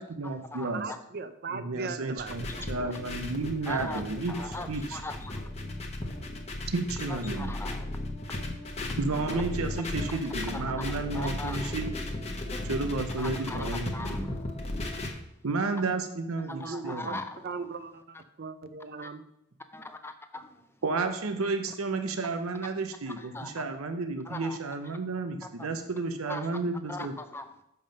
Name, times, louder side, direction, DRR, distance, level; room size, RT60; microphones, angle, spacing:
voice 1, 0.0-0.9 1.5-5.0 6.7-7.5 9.0-11.9 12.6-14.4 15.4-17.2 20.8-27.1, right 3 dB, 75° right, 7 dB, 0.7 m, -32 dB
voice 2, 0.6-2.7 3.9-4.7 16.4-17.2 17.4-19.2, right 4 dB, 45° right, 11 dB, 0.5 m, -39 dB
sound 1, 2.2-15.1, left 1 dB, 30° left, 1.0 m, -36 dB
voice 3, 3.7-4.0 4.3-5.3 7.1-7.9 10.5-11.7 13.2-14.4 16.5-17.2 19.0-19.1 19.7-20.5 23.3-23.6 24.3-24.6 25.6-25.7 26.3-26.4 26.9-27.4, left 2 dB, 10° left, 8 dB, 0.5 m, -40 dB
7.3 x 5.4 x 5.2 m, 0.80 s
head